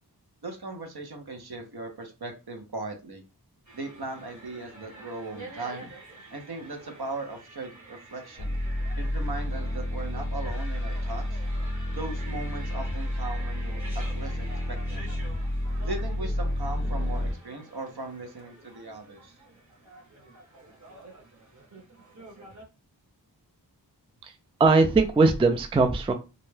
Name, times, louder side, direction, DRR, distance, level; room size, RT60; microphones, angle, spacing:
voice 1, 0.4-3.2 3.7-5.9 6.3-8.6 8.9-11.4 11.9-15.1 15.8-19.4, right 2 dB, 65° right, 4 dB, 0.9 m, -38 dB
sound 1, 3.7-22.6, right 2 dB, 45° right, 1.1 m, -48 dB
sound 2, 8.4-17.3, left 1 dB, 30° left, 0.7 m, -30 dB
voice 2, 24.6-26.1, right 3 dB, 15° right, 6 dB, 0.3 m, -20 dB
2.6 x 2.2 x 3.2 m, 0.29 s
wide cardioid pair, 50°, 41 cm